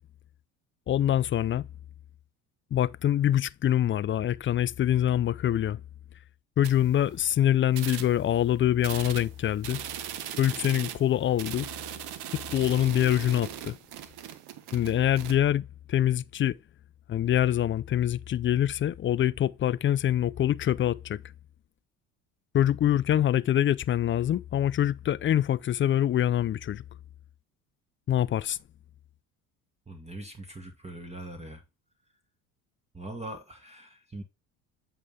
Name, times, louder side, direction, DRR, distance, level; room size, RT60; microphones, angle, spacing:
voice 1, 0.9-1.7 2.7-5.8 6.6-9.8 10.4-11.7 12.5-13.8 14.7-16.6 17.1-21.2 22.5-26.8 28.1-28.6, left 11 dB, 30° left, 0.4 m, -25 dB
sound 1, 6.6-7.3 7.7-8.4 8.8-15.3, right 11 dB, 65° right, 1.2 m, -39 dB
voice 2, 29.9-31.6 32.9-34.2, right 1 dB, 15° right, 1.7 m, -41 dB
8.0 x 5.6 x 3.5 m
hypercardioid pair, 70°, 42 cm